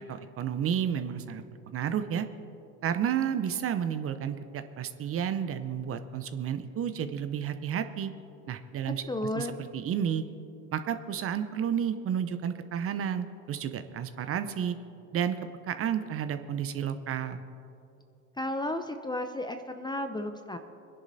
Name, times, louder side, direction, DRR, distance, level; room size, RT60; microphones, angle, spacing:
voice 1, 0.1-2.3 2.8-8.1 8.5-10.2 10.7-14.8 15.1-15.4 15.7-17.4, right 8 dB, 30° right, 10 dB, 0.7 m, -31 dB
voice 2, 9.1-9.5 18.4-20.6, left 1 dB, 10° left, 7 dB, 0.6 m, -33 dB
25.5 x 10.5 x 2.7 m, 2.7 s
hypercardioid pair, 85°, 44 cm